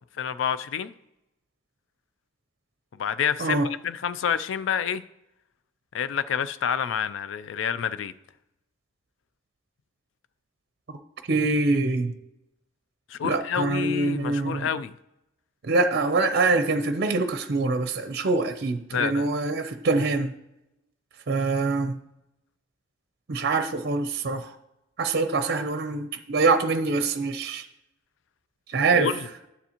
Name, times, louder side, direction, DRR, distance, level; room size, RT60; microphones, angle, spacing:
voice 1, 0.2-0.9 3.0-5.0 5.9-8.1 13.1-14.9 18.9-19.3 28.9-29.3, left 8 dB, 70° left, 0.4 m, -28 dB
voice 2, 11.3-12.1 13.2-14.7 15.6-20.3 21.3-22.0 23.3-24.5 25.0-27.7 28.7-29.1, right 3 dB, 55° right, 0.6 m, -24 dB
9.5 x 6.9 x 2.9 m
head